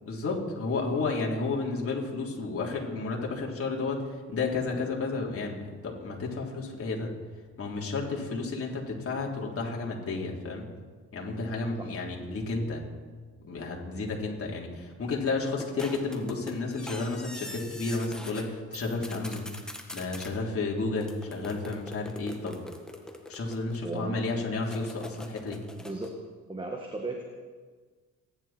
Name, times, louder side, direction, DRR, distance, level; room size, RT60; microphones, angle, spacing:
voice 1, 0.0-7.1 7.6-10.7 11.1-12.8 13.4-19.5 19.9-22.6 23.3-25.6, left 3 dB, 50° left, -2 dB, 3.7 m, -32 dB
sound 1, 15.6-18.5 18.7-20.3 21.0-24.0 24.6-26.2, left 1 dB, ahead, 1.8 m, -43 dB
voice 2, 23.8-24.2 25.8-26.1 26.5-27.2, right 2 dB, 15° right, 1 dB, 1.8 m, -35 dB
28.5 x 11.0 x 4.5 m, 1.5 s
cardioid pair, 90°, 30 cm